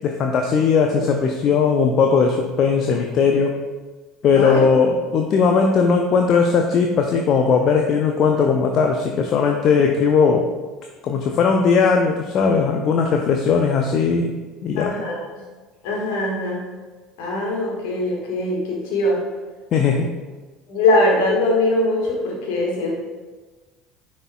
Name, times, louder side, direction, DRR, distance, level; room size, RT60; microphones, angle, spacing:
voice 1, 0.0-3.6 4.2-10.5 11.0-14.4 14.6-14.9 19.7-20.1, left 5 dB, 45° left, 3 dB, 0.5 m, -18 dB
voice 2, 14.8-15.2 15.8-16.6 17.2-19.2 20.7-23.0, left 2 dB, 60° left, -2 dB, 1.6 m, -21 dB
9.8 x 4.2 x 2.3 m, 1.3 s
figure-of-eight pair, 65°, 0 cm